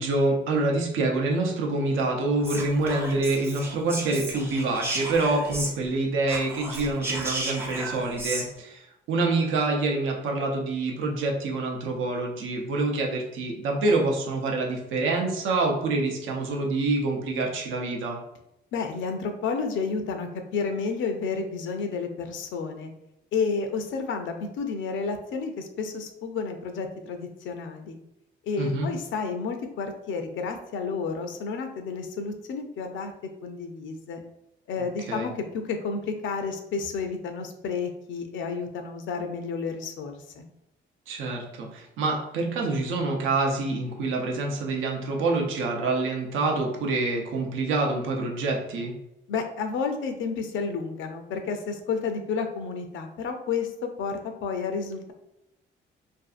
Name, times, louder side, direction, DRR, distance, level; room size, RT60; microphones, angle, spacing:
voice 1, 0.0-18.2 28.6-28.9 35.0-35.3 41.1-48.9, right 2 dB, 85° right, 1 dB, 0.6 m, -26 dB
Whispering, 2.4-6.0 6.2-8.5, right 2 dB, 10° right, 0.6 m, -34 dB
voice 2, 18.7-22.9 23.3-28.0 28.4-33.1 33.4-34.2 34.7-40.4 49.3-55.1, left 5 dB, 75° left, 6 dB, 0.5 m, -31 dB
2.6 x 2.4 x 2.4 m, 0.85 s
cardioid pair, 90°, 20 cm